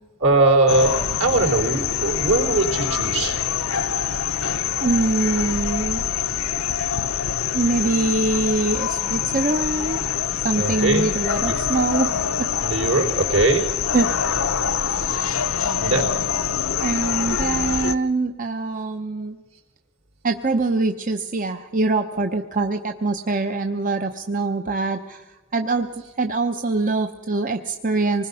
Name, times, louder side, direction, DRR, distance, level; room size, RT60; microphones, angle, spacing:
voice 1, 0.2-3.3 10.5-11.0 11.5-11.6 12.6-13.7 15.1-15.3 15.8-16.1, right 2 dB, 70° right, 3 dB, 3.9 m, -20 dB
sound 1, 0.7-18.0, left 8 dB, 70° left, 0.8 m, -25 dB
voice 2, 4.8-6.1 7.5-10.0 10.4-12.1 12.4-12.5 13.9-14.1 16.8-19.4 20.2-25.2 25.5-28.3, right 3 dB, 40° right, 5 dB, 0.8 m, -23 dB
26.0 x 20.0 x 5.6 m, 1.2 s
head